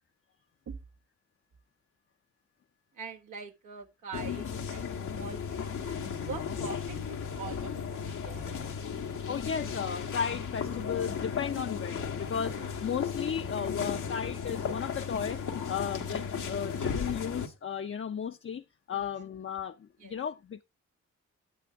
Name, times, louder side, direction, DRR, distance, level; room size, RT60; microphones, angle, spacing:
voice 1, 2.9-8.5 18.9-19.2 20.0-20.2, right 5 dB, 90° right, 1.4 m, -44 dB
sound 1, 4.1-17.5, left 6 dB, 90° left, 1.4 m, -35 dB
voice 2, 9.3-20.6, left 7 dB, 45° left, 0.6 m, -35 dB
9.3 x 9.3 x 3.4 m
cardioid pair, 55°, 30 cm